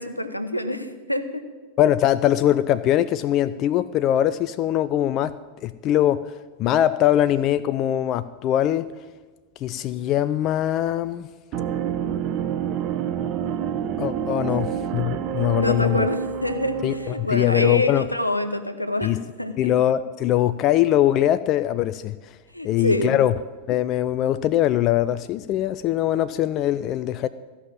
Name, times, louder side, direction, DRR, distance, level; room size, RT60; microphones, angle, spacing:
voice 1, 0.0-1.4 14.4-14.8 15.5-19.1 19.4-19.7 22.5-23.2, left 1 dB, 90° left, 8 dB, 0.8 m, -26 dB
voice 2, 1.8-5.3 5.6-6.3 6.6-8.9 9.6-11.3 14.0-16.1 16.8-18.1 19.0-19.2 19.6-22.2 22.6-23.3 23.7-27.3, left 12 dB, 35° left, 13 dB, 0.3 m, -22 dB
sound 1, 11.5-17.3, right 8 dB, 40° right, 0.8 m, -28 dB
14.5 x 5.8 x 8.6 m, 1.3 s
figure-of-eight pair, 90°, 0 cm